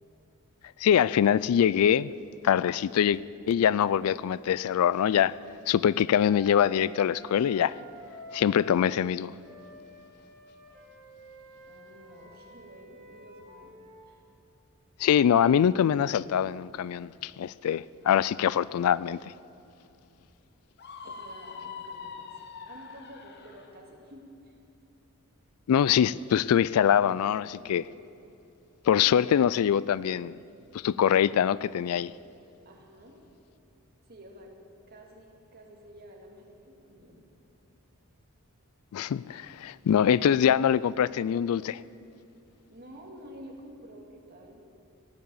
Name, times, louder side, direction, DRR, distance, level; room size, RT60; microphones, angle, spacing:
voice 1, 0.8-2.1 2.4-3.2 3.5-5.3 5.7-7.8 8.3-9.3 15.0-19.2 25.7-27.9 28.9-30.4 30.8-32.1 38.9-41.8, left 9 dB, 80° left, 0.3 m, -24 dB
Wind instrument woodwind instrument, 6.2-8.8 9.4-14.0, equal, 5° right, 4.0 m, -50 dB
voice 2, 11.7-13.8 14.0-14.2 21.0-24.6 32.6-33.2 34.1-34.5 34.9-37.3 42.7-44.6, equal, 45° right, 2.2 m, -50 dB
Screaming, 20.8-23.7, left 5 dB, 50° left, 1.0 m, -43 dB
15.0 x 10.5 x 7.0 m
head